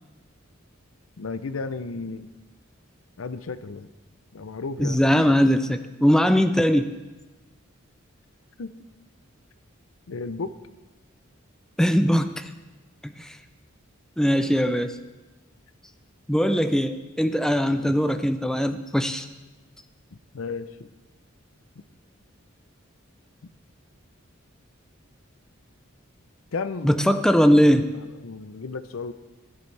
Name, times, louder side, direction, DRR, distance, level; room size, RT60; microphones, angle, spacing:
voice 1, 1.2-2.3 3.2-3.9 4.3-5.0 8.6-8.7 10.1-10.6 17.7-17.9 20.3-20.9 26.5-26.9 27.8-29.1, left 4 dB, 90° left, 13 dB, 0.6 m, -33 dB
voice 2, 4.8-6.9 11.8-12.5 13.0-13.4 14.2-15.0 16.3-19.2 26.8-27.9, equal, 5° left, 9 dB, 0.4 m, -20 dB
16.5 x 10.5 x 3.3 m, 1.1 s
head